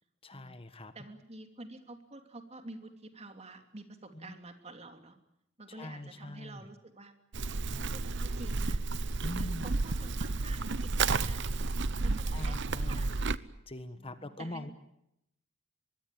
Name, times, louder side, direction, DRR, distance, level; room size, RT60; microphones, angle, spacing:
voice 1, 0.2-0.9 4.1-4.4 5.7-6.6 7.7-8.1 9.2-9.8 12.3-13.1 13.7-14.7, left 1 dB, 30° left, 10 dB, 1.5 m, -43 dB
voice 2, 0.9-5.2 5.6-7.1 7.7-8.8 9.2-11.7 12.0-13.1 14.0-14.7, right 2 dB, 30° right, 6 dB, 3.0 m, -49 dB
Livestock farm animals working animals, 7.3-13.4, right 3 dB, 65° right, 0.9 m, -31 dB
24.5 x 22.5 x 9.3 m, 0.80 s
head